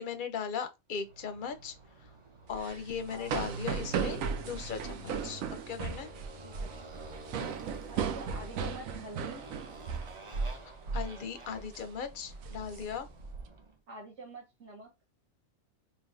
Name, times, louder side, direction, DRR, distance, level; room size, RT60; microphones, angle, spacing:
voice 1, 0.0-1.7 2.5-6.1 7.3-7.6 10.9-13.1, left 6 dB, 50° left, 0.6 m, -38 dB
Motorcycle, 1.0-13.7, right 2 dB, 40° right, 0.4 m, -49 dB
sound 1, 2.5-10.6 10.9-11.1 11.5-11.8 12.3-13.4, right 6 dB, 85° right, 1.0 m, -36 dB
voice 2, 7.9-9.4 13.9-14.9, right 2 dB, 60° right, 1.4 m, -46 dB
5.6 x 2.4 x 2.5 m
omnidirectional pair, 1.4 m